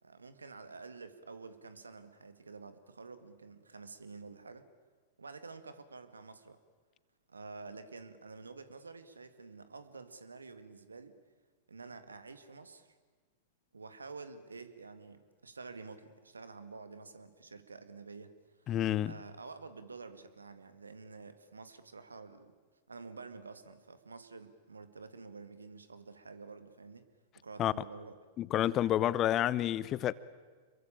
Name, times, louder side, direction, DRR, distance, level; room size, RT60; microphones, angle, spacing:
voice 1, 0.0-4.7 5.2-6.6 7.3-11.2 11.7-13.0 13.7-18.7 19.1-22.6 22.9-27.1 27.4-28.2, right 4 dB, 85° right, 2.0 m, -49 dB
voice 2, 18.7-19.1 27.6-27.7 28.4-30.1, left 12 dB, 35° left, 0.9 m, -29 dB
27.5 x 22.5 x 8.9 m
figure-of-eight pair, 100°, 0 cm